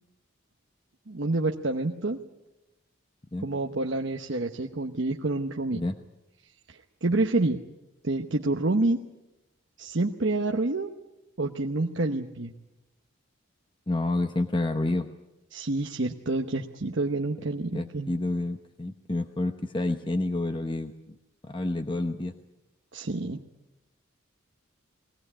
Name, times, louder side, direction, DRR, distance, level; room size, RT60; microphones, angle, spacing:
voice 1, 1.1-2.2 3.4-5.8 6.7-7.6 8.0-9.0 9.8-10.9 11.4-12.5 15.5-18.1 22.9-23.4, right 2 dB, 60° right, 2 dB, 1.0 m, -28 dB
voice 2, 13.9-15.1 17.7-21.2 21.4-22.3, left 2 dB, 25° left, 7 dB, 0.9 m, -29 dB
21.0 x 17.5 x 9.9 m, 0.97 s
head